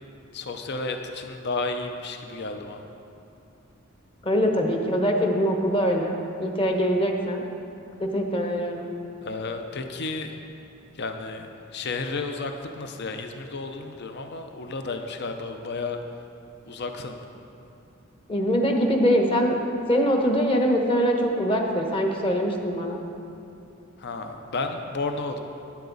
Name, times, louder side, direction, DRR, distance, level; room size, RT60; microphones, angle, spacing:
voice 1, 0.3-2.8 9.2-10.3 10.9-11.5 11.7-16.0 16.7-17.2 24.0-25.4, left 3 dB, 50° left, 6 dB, 0.6 m, -32 dB
voice 2, 4.2-6.1 6.4-7.4 8.0-8.8 18.3-19.6 19.9-23.0, equal, 25° left, 2 dB, 1.1 m, -23 dB
12.0 x 10.0 x 4.0 m, 2.7 s
head